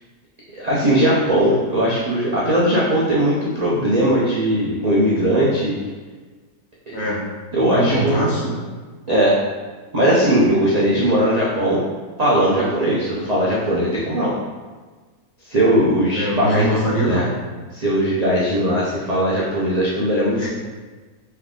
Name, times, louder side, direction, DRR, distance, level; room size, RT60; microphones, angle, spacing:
voice 1, 0.5-5.8 6.9-7.0 7.5-8.3 9.1-9.4 9.9-11.8 12.2-14.3 15.5-16.7 17.0-17.2 17.7-20.5, right 1 dB, 45° right, -7 dB, 0.5 m, -19 dB
voice 2, 7.7-8.6 16.1-17.3 20.4-20.5, right 1 dB, 60° left, -6 dB, 1.4 m, -22 dB
3.4 x 3.3 x 3.7 m, 1.4 s
omnidirectional pair, 1.7 m